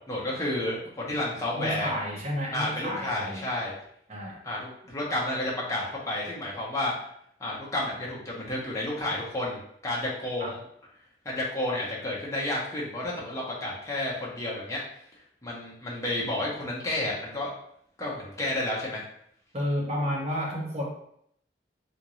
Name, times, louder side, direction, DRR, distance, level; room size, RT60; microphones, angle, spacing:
voice 1, 0.1-1.9 2.5-3.7 4.4-6.9 7.4-10.6 11.2-14.8 15.4-17.5 18.0-19.0, left 1 dB, 15° left, -5 dB, 0.9 m, -31 dB
voice 2, 1.5-3.5 4.1-4.4 10.4-10.6 19.5-20.8, equal, 35° right, -4 dB, 1.1 m, -31 dB
3.6 x 2.6 x 3.1 m, 0.68 s
head